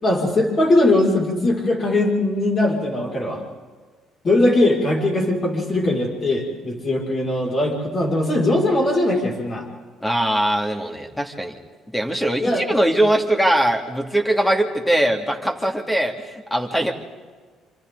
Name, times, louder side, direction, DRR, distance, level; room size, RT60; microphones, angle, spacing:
voice 1, 0.0-3.4 4.2-9.7 12.4-12.6, left 1 dB, 35° left, -1 dB, 6.0 m, -20 dB
voice 2, 10.0-11.5 11.9-16.9, right 1 dB, 10° left, 3 dB, 2.6 m, -21 dB
27.0 x 26.0 x 4.1 m, 1.5 s
cardioid pair, 95°, 0 cm